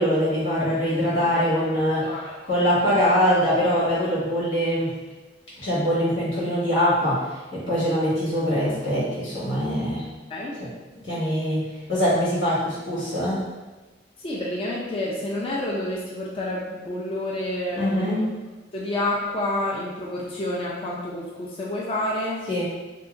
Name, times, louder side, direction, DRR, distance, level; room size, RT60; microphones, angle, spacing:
voice 1, 0.0-2.1 2.4-4.9 5.6-7.2 7.5-10.1 10.6-10.7 11.1-13.4 17.7-18.3 22.5-22.6, equal, 90° left, -9 dB, 1.5 m, -23 dB
voice 2, 1.9-2.3 2.8-2.9 10.3-10.6 14.2-18.2 18.7-22.4, left 1 dB, 30° left, -4 dB, 0.3 m, -29 dB
2.8 x 2.6 x 2.4 m, 1.2 s
head